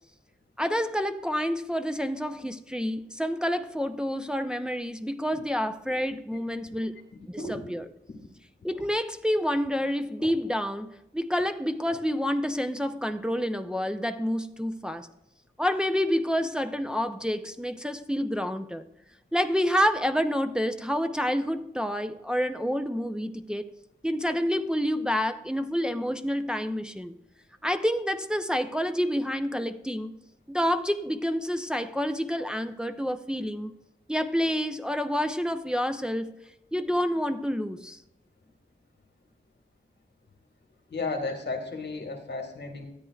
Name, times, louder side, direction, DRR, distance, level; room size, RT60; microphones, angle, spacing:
voice 1, 0.6-7.0 7.3-7.9 8.6-15.1 15.6-18.8 19.3-23.6 24.0-27.1 27.6-30.2 30.5-33.7 34.1-36.3 36.7-38.0, equal, 5° right, 0.6 m, -28 dB
sound 1, 5.3-8.4 8.7-9.2 9.5-9.6 9.9-10.6 11.3-12.1 12.7-12.9, right 1 dB, 65° right, 3.8 m, -45 dB
voice 2, 40.9-42.9, left 3 dB, 85° left, 1.6 m, -34 dB
13.0 x 8.8 x 2.4 m
cardioid pair, 50°, 17 cm